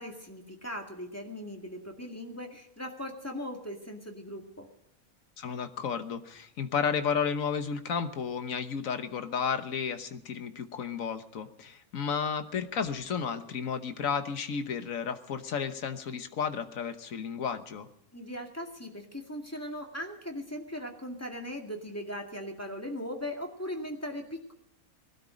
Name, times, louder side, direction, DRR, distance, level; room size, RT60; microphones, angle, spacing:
voice 1, 0.0-4.7 18.1-24.5, equal, 10° left, 2 dB, 2.1 m, -39 dB
voice 2, 5.4-17.9, left 6 dB, 70° left, 9 dB, 1.5 m, -32 dB
20.0 x 12.5 x 5.1 m, 0.75 s
omnidirectional pair, 1.5 m